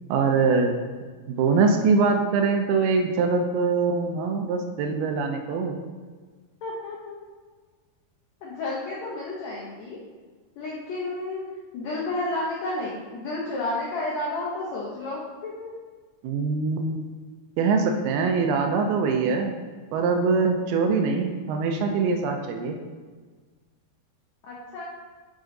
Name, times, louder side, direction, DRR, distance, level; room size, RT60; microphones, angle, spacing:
voice 1, 0.1-0.8 1.3-5.8 16.2-17.1 17.6-19.5 19.9-22.8, right 4 dB, 85° right, 4 dB, 2.6 m, -23 dB
voice 2, 6.6-7.2 8.4-10.0 10.6-11.4 11.7-15.7 24.4-24.8, left 2 dB, 75° left, -5 dB, 1.7 m, -31 dB
8.8 x 5.3 x 3.9 m, 1.4 s
omnidirectional pair, 4.5 m